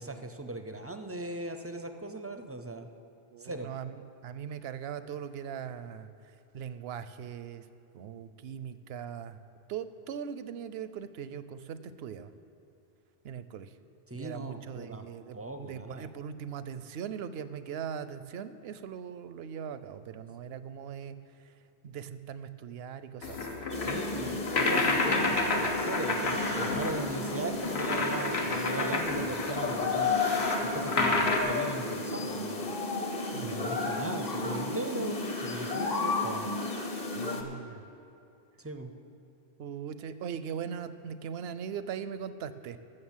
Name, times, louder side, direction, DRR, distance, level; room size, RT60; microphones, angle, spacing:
voice 1, 0.0-2.9 3.4-3.7 14.1-15.1 15.3-16.1 23.8-30.2 30.6-32.7 33.4-36.5 38.6-38.9, right 2 dB, 20° right, 7 dB, 0.4 m, -38 dB
voice 2, 3.3-6.1 6.5-7.6 7.9-9.4 9.7-12.3 13.2-13.7 14.1-21.2 21.8-23.5 33.3-33.7 37.1-37.8 39.6-42.8, right 8 dB, 75° right, 13 dB, 0.8 m, -40 dB
sound 1, 23.2-31.4, left 3 dB, 80° left, 1.4 m, -30 dB
sound 2, 23.7-37.4, left 3 dB, 40° left, 1.1 m, -33 dB
13.0 x 6.7 x 7.3 m, 2.6 s
omnidirectional pair, 1.1 m